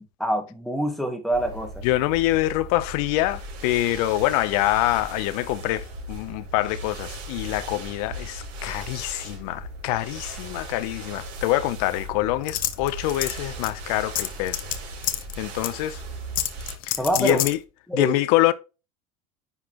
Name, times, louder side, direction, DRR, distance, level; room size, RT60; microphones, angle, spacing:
voice 1, 0.2-1.7 17.0-17.4 17.9-18.1, right 1 dB, ahead, 1.4 m, -25 dB
sound 1, 1.3-16.8, right 1 dB, 70° right, 4.4 m, -38 dB
voice 2, 1.8-14.6 15.4-16.0 16.8-17.6 17.9-18.5, left 16 dB, 80° left, 0.6 m, -25 dB
sound 2, 12.5-13.4 13.6-13.7 14.2-14.8 15.0-15.3 15.6-15.7 16.4-17.5, left 13 dB, 50° left, 0.9 m, -27 dB
9.8 x 4.1 x 2.9 m
cardioid pair, 135°, 19 cm